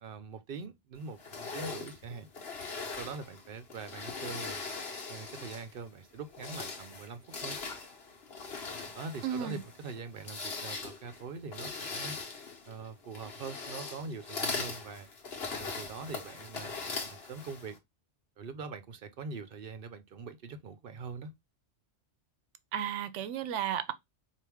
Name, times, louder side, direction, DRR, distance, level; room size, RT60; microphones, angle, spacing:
voice 1, 0.0-2.3 2.8-4.6 5.1-7.6 8.9-12.2 12.7-15.1 15.6-16.7 17.0-17.8 18.4-21.3, right 4 dB, 60° right, 0.7 m, -43 dB
sound 1, 1.2-5.8 6.2-17.8, left 4 dB, 60° left, 1.3 m, -40 dB
voice 2, 9.2-9.6 22.7-23.9, right 9 dB, 85° right, 0.9 m, -33 dB
4.6 x 2.5 x 3.4 m
omnidirectional pair, 1.2 m